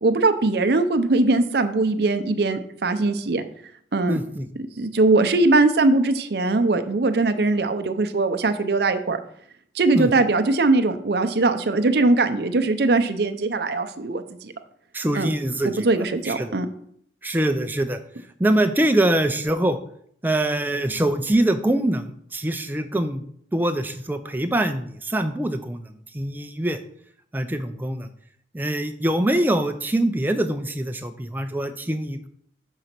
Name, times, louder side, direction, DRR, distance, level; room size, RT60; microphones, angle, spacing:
voice 1, 0.0-3.4 3.9-4.2 4.8-9.2 9.7-14.5 15.1-15.3 15.6-16.7, right 2 dB, 60° right, 9 dB, 0.6 m, -21 dB
voice 2, 4.1-4.5 9.9-10.1 14.9-16.5 17.2-18.0 18.4-19.8 20.2-23.2 23.5-26.8 27.3-28.1 28.5-32.3, right 1 dB, 10° right, 7 dB, 0.4 m, -24 dB
6.4 x 4.0 x 5.8 m, 0.66 s
head